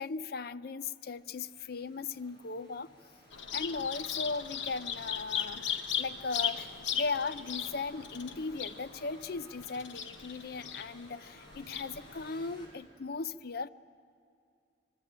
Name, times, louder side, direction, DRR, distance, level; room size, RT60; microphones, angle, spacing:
voice 1, 0.0-2.9 3.5-5.7 6.0-13.7, left 4 dB, 55° left, 15 dB, 0.5 m, -37 dB
sound 1, 0.8-12.7, equal, 25° left, 5.2 m, -57 dB
Bird vocalization bird call bird song, 3.3-12.3, left 8 dB, 85° left, 1.0 m, -38 dB
24.5 x 22.5 x 8.8 m, 2.4 s
head